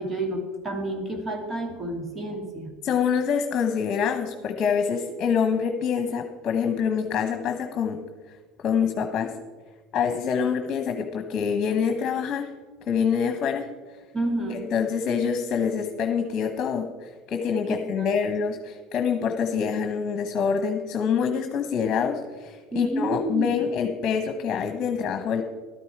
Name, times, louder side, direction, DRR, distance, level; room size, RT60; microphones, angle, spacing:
voice 1, 0.0-2.7 14.1-14.7 17.7-18.2 22.7-23.6, right 1 dB, 30° right, 2 dB, 2.8 m, -30 dB
voice 2, 2.8-8.0 8.6-9.3 9.9-12.5 12.9-13.6 14.5-25.4, left 6 dB, 45° left, 5 dB, 1.3 m, -26 dB
12.5 x 10.0 x 4.8 m, 1.3 s
hypercardioid pair, 80°, 0 cm